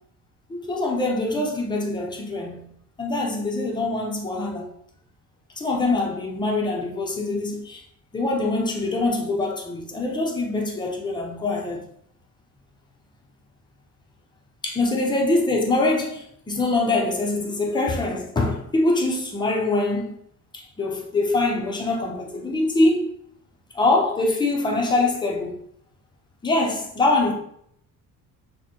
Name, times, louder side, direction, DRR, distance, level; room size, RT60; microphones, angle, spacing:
voice 1, 0.5-2.7 3.0-4.7 5.6-7.8 8.1-11.8 14.6-20.1 20.5-23.1 23.7-25.5 26.4-27.3, left 2 dB, 15° left, 0.6 m, -24 dB
6.4 x 2.1 x 2.9 m
cardioid pair, 165°, 35 cm